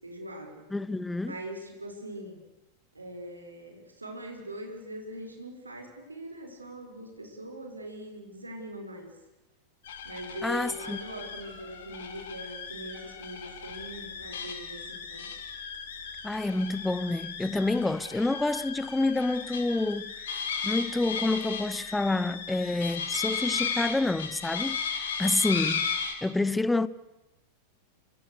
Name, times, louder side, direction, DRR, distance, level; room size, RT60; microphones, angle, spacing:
voice 1, 0.0-0.6 1.2-2.4 2.9-9.1 10.0-15.3, equal, 80° right, 6.0 m, -41 dB
voice 2, 0.7-1.4 10.4-11.0 16.2-25.9 26.2-26.9, left 2 dB, 5° left, 1.0 m, -28 dB
sound 1, 9.8-26.1, left 6 dB, 60° left, 4.3 m, -35 dB
28.5 x 26.0 x 6.6 m
figure-of-eight pair, 90°, 0 cm